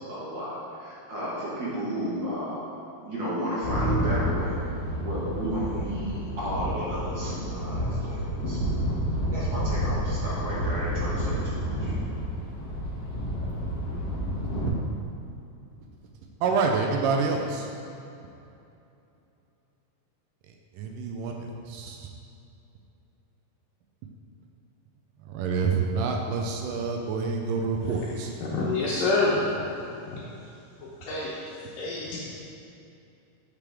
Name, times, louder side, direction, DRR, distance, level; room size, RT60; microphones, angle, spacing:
voice 1, 0.1-2.6 3.0-4.6 5.0-8.6 9.3-11.9, equal, 45° right, -8 dB, 1.6 m, -33 dB
sound 1, 3.6-14.7, equal, 55° left, 2.1 m, -29 dB
voice 2, 16.4-17.7 20.7-22.1 25.2-28.3, right 4 dB, 80° right, 2 dB, 2.2 m, -27 dB
voice 3, 28.6-29.5 30.1-30.2 31.0-31.4 31.7-32.2, left 3 dB, 80° left, -8 dB, 2.7 m, -26 dB
8.4 x 6.8 x 3.6 m, 2.7 s
omnidirectional pair, 3.9 m